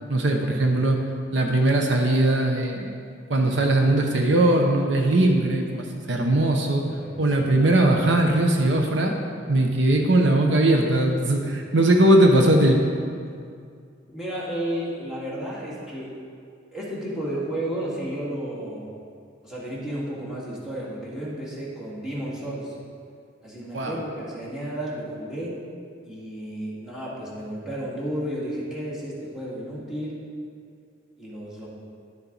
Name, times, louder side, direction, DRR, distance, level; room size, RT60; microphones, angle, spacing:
voice 1, 0.1-1.0 1.3-2.9 3.3-6.8 7.2-9.2 9.5-12.8 23.7-24.0, right 1 dB, 70° right, 2 dB, 0.8 m, -20 dB
voice 2, 14.1-16.1 16.7-18.9 19.4-22.8 23.4-25.5 26.0-30.2 31.2-31.7, right 1 dB, 5° right, -7 dB, 2.1 m, -32 dB
11.0 x 7.1 x 4.0 m, 2.3 s
head